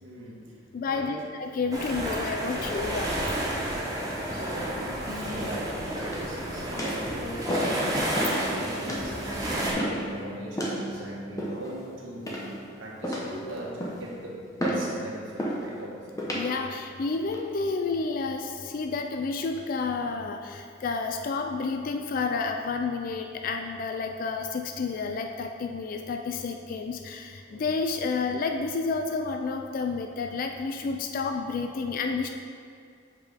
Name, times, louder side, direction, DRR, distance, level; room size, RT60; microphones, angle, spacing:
voice 1, 0.0-1.3 3.5-16.3 27.5-27.7, right 1 dB, 85° right, -3 dB, 1.3 m, -39 dB
voice 2, 0.7-3.1 16.3-32.3, left 4 dB, 45° left, 4 dB, 0.3 m, -30 dB
sound 1, 1.7-9.7, right 1 dB, 20° right, 0.9 m, -31 dB
sound 2, 6.0-6.4 6.8-7.0 7.5-7.8 8.1-8.4 8.9-9.1 9.8-10.1 10.6-10.8 11.4-11.8 12.3-12.6 13.0-13.4 13.8-14.1 14.6-14.9 15.4-15.6 16.2-16.5 17.1-17.4, equal, 15° left, 0.8 m, -31 dB
Piano, 8.4-14.9, equal, 35° right, 1.4 m, -44 dB
7.3 x 5.2 x 3.5 m, 2.3 s
head